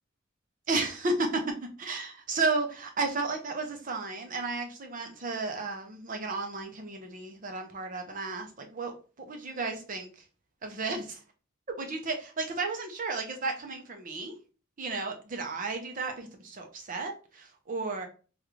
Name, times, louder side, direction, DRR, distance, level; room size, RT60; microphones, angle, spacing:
voice 1, 0.7-10.1 10.6-11.2 11.8-14.3 14.8-18.1, right 3 dB, 40° right, 4 dB, 0.7 m, -33 dB
3.6 x 2.4 x 3.1 m, 0.36 s
head